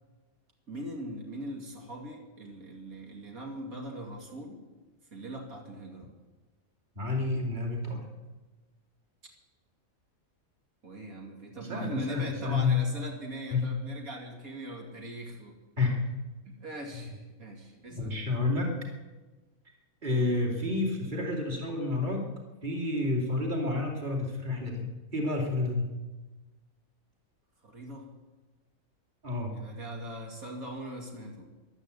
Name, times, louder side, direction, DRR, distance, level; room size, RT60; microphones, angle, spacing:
voice 1, 0.7-4.6 5.1-6.1 10.8-15.6 16.4-18.1 20.1-20.4 27.6-28.1 29.6-31.5, right 1 dB, 75° right, 0 dB, 3.0 m, -41 dB
voice 2, 7.0-8.1 11.6-12.8 13.5-13.7 15.8-16.0 16.9-17.1 17.9-18.7 20.0-22.3 22.6-25.9 29.2-29.6, left 3 dB, 35° right, 0 dB, 2.8 m, -30 dB
14.5 x 11.5 x 8.2 m, 1.2 s
omnidirectional pair, 1.5 m